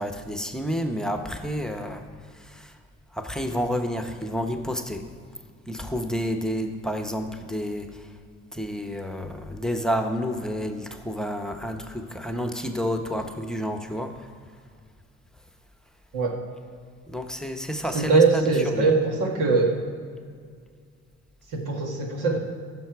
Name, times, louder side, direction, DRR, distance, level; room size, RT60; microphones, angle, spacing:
voice 1, 0.0-2.0 2.4-2.7 3.1-5.1 5.7-8.0 8.5-14.2 17.1-18.9, equal, ahead, 6 dB, 0.8 m, -30 dB
voice 2, 17.9-19.8 21.5-22.4, right 4 dB, 90° right, 1 dB, 1.6 m, -22 dB
14.5 x 5.9 x 4.6 m, 2.1 s
cardioid pair, 90°, 30 cm